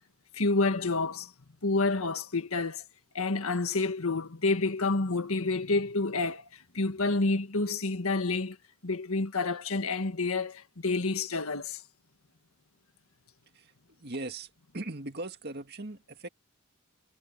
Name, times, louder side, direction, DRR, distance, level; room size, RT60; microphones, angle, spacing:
voice 1, 0.3-1.3 1.6-2.8 3.1-8.6 8.8-11.8, left 3 dB, 75° left, 1.7 m, -29 dB
voice 2, 14.0-16.3, right 2 dB, 45° right, 2.0 m, -39 dB
head